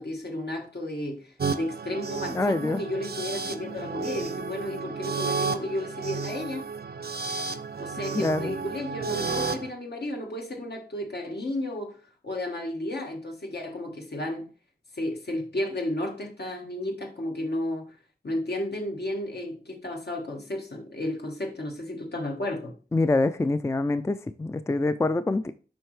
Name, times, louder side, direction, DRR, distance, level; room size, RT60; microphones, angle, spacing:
voice 1, 0.0-6.6 7.8-12.0 12.2-14.5 14.9-17.9 18.2-22.7, left 1 dB, 75° left, 1.5 m, -33 dB
sound 1, 1.4-9.7, right 4 dB, 70° right, 0.5 m, -32 dB
voice 2, 2.3-2.8 8.1-8.6 22.9-25.5, left 2 dB, 15° left, 0.3 m, -25 dB
7.8 x 5.3 x 3.2 m
wide cardioid pair, 85°, 17 cm